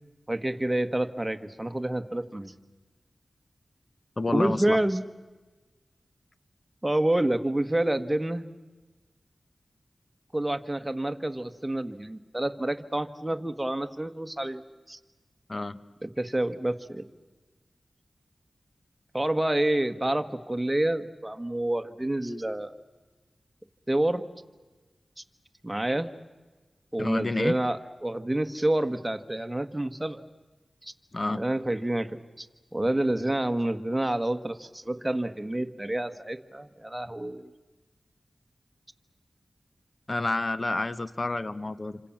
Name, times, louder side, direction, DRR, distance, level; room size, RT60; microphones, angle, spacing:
voice 1, 0.3-2.5 4.3-5.0 6.8-8.5 10.3-14.6 14.9-15.0 16.0-17.0 19.1-22.7 23.9-24.2 25.6-26.1 26.9-30.2 30.8-30.9 31.3-32.5 32.7-37.5, right 1 dB, 15° right, 8 dB, 1.7 m, -28 dB
voice 2, 4.2-4.8 15.5-15.8 27.0-27.5 31.1-31.4 40.1-42.0, left 2 dB, 40° left, 14 dB, 1.3 m, -29 dB
28.0 x 26.5 x 7.4 m, 1.2 s
wide cardioid pair, 60°, 0 cm